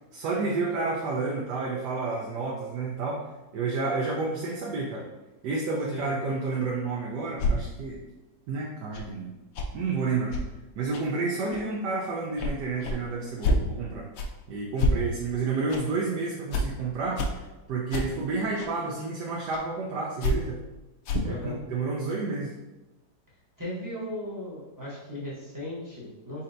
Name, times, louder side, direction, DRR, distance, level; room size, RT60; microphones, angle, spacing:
voice 1, 0.1-3.3 3.5-5.1 5.4-8.0 8.5-9.3 9.7-10.4 10.8-14.1 14.5-20.6 21.2-22.5, right 4 dB, 70° right, -3 dB, 1.2 m, -30 dB
sound 1, 7.4-7.5 8.9-9.1 9.5-9.7 10.3-10.4 10.9-11.0 11.5-11.6 12.4-12.5 12.8-13.0 13.4-13.6 14.2-14.3 14.8-15.0 15.7-15.8 16.5-16.6 17.2-17.3 17.9-18.0 18.6-18.7 19.5-19.6 20.2-20.4 21.0-21.3, left 1 dB, 65° left, 0.9 m, -26 dB
voice 2, 21.2-21.6 23.6-26.4, left 1 dB, 15° right, -7 dB, 0.8 m, -37 dB
4.3 x 4.2 x 2.6 m, 1.1 s
omnidirectional pair, 1.9 m